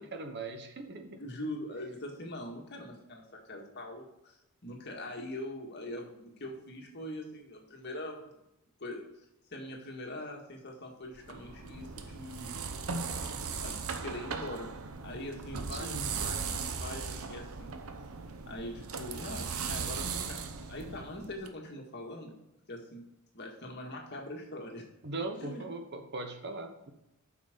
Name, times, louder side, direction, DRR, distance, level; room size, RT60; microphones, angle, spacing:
voice 1, 0.0-1.2 15.7-16.1 25.0-26.9, right 2 dB, 50° right, 6 dB, 1.1 m, -40 dB
voice 2, 1.2-8.4 8.8-9.1 9.5-12.6 13.6-14.7 15.0-17.8 18.5-22.3 22.7-23.0 23.3-24.8 25.4-25.7, left 1 dB, 50° left, 1 dB, 1.9 m, -42 dB
sound 1, 11.1-21.5, right 5 dB, 75° right, 0.8 m, -38 dB
8.4 x 6.0 x 5.1 m, 0.89 s
head